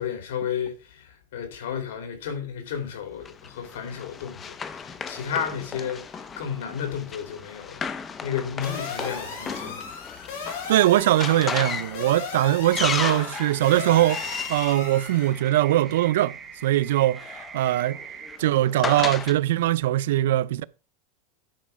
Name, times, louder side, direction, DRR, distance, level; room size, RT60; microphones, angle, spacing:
voice 1, 0.0-9.9, left 8 dB, 85° left, 2.7 m, -33 dB
Run, 3.3-15.9 16.9-19.4, left 6 dB, 15° left, 0.6 m, -35 dB
sound 1, 8.6-15.3, left 5 dB, 60° left, 5.2 m, -36 dB
voice 2, 10.7-16.4 16.6-18.0 18.4-20.6, right 14 dB, 75° right, 0.4 m, -21 dB
sound 2, 13.3-18.4, right 7 dB, 15° right, 0.8 m, -42 dB
10.5 x 4.6 x 5.3 m
supercardioid pair, 160°, 0 cm